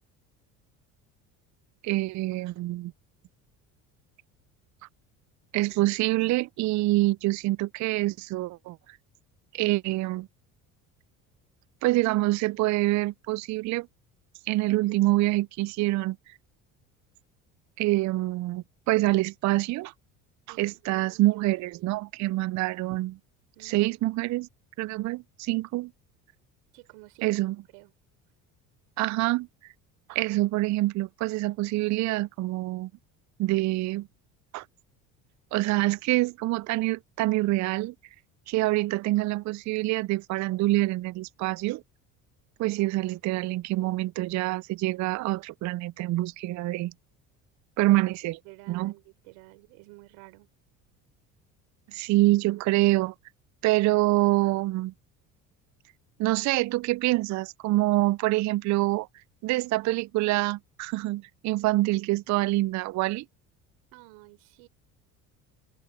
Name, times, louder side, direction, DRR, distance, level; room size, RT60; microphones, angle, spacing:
voice 1, 1.8-2.9 5.5-8.8 9.5-10.3 11.8-13.9 14.5-16.2 17.8-19.9 20.5-23.2 23.6-24.5 24.8-25.9 27.2-27.6 29.0-29.5 30.1-32.9 33.4-34.1 34.5-34.6 35.5-37.9 38.5-41.8 42.6-46.9 47.8-48.4 48.7-48.9 51.9-53.1 53.6-54.9 56.2-59.1 59.4-63.2, right 18 dB, 45° right, 0.4 m, -26 dB
voice 2, 20.5-22.0 23.5-23.9 26.7-27.3 27.7-27.9 48.4-50.5 63.9-64.7, right 28 dB, 80° right, 4.6 m, -51 dB
supercardioid pair, 75°, 41 cm